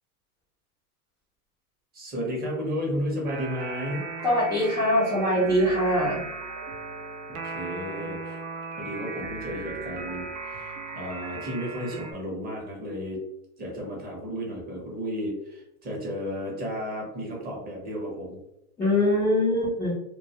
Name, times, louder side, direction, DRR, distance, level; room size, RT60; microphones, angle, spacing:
voice 1, 1.9-4.1 7.3-8.4 8.8-13.2 13.6-18.4, equal, 20° right, -2 dB, 0.7 m, -33 dB
sound 1, 3.3-12.1, right 3 dB, 85° right, 0.6 m, -37 dB
voice 2, 4.2-6.2 18.8-19.9, left 1 dB, 10° left, -9 dB, 0.3 m, -23 dB
2.2 x 2.1 x 2.7 m, 0.87 s
hypercardioid pair, 120°, 45 cm